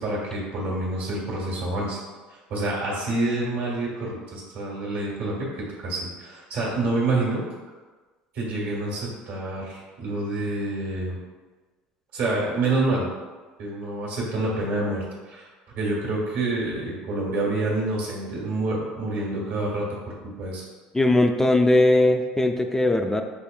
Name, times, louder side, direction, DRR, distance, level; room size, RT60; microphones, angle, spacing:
voice 1, 0.0-2.0 2.3-7.4 8.3-11.2 12.1-13.1 13.6-15.5 15.7-20.6, right 2 dB, 70° right, -4 dB, 1.4 m, -27 dB
voice 2, 20.9-23.2, left 2 dB, 10° left, 5 dB, 0.4 m, -19 dB
5.3 x 2.4 x 2.3 m, 1.3 s
hypercardioid pair, 80°, 4 cm